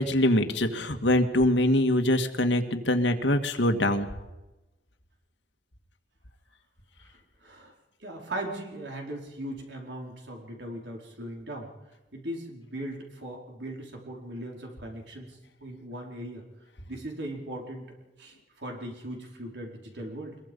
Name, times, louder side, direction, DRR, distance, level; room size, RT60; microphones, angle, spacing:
voice 1, 0.0-4.1, left 1 dB, 80° left, 6 dB, 2.0 m, -23 dB
voice 2, 7.4-7.7 8.0-11.7 12.1-16.5 16.9-17.9 18.2-20.4, right 1 dB, 70° right, 0 dB, 4.8 m, -39 dB
24.0 x 22.5 x 5.5 m, 1.1 s
head